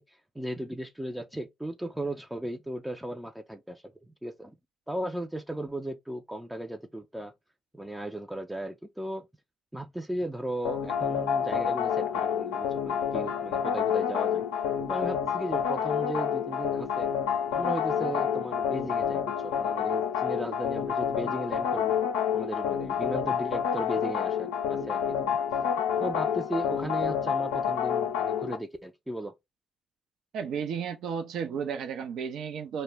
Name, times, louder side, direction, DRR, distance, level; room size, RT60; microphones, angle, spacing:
voice 1, 0.0-3.8 4.2-4.6 4.9-7.3 7.7-9.3 9.7-14.5 14.9-17.1 17.5-22.0 22.3-25.4 26.0-29.3, right 1 dB, 5° right, 0.4 m, -36 dB
sound 1, 10.6-28.6, left 8 dB, 90° left, 0.5 m, -28 dB
voice 2, 30.3-32.8, right 7 dB, 65° right, 0.4 m, -33 dB
2.1 x 2.0 x 3.3 m
hypercardioid pair, 60°, 0 cm